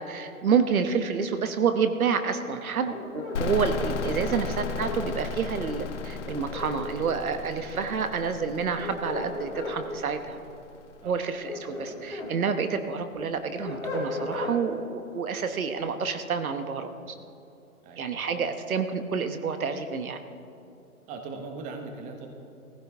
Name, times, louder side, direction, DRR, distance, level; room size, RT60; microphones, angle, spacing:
voice 1, 0.0-10.4 11.0-17.2 18.0-20.2, right 6 dB, 70° right, 9 dB, 1.2 m, -28 dB
sound 1, 2.9-5.0 6.3-7.4 8.5-9.8 11.2-12.3 12.8-14.6, left 2 dB, 10° left, 2.2 m, -36 dB
sound 2, 3.4-10.9, left 4 dB, 55° left, 1.1 m, -35 dB
voice 2, 21.1-22.3, right 4 dB, 15° right, 4 dB, 1.1 m, -40 dB
19.5 x 15.0 x 3.5 m, 2.8 s
hypercardioid pair, 140°, 44 cm